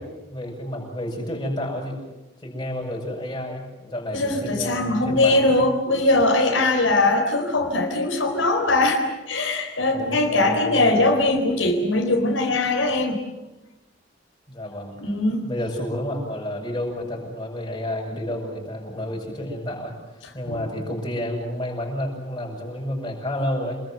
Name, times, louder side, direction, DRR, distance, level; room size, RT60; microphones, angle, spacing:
voice 1, 0.0-2.0 2.4-5.7 9.9-11.0 14.5-14.9 15.4-19.9 20.3-23.8, left 1 dB, 25° left, 0 dB, 8.0 m, -30 dB
voice 2, 4.1-13.2 15.0-15.5 20.2-20.7, left 2 dB, 90° left, 2 dB, 4.2 m, -21 dB
29.0 x 21.0 x 8.0 m, 1.1 s
head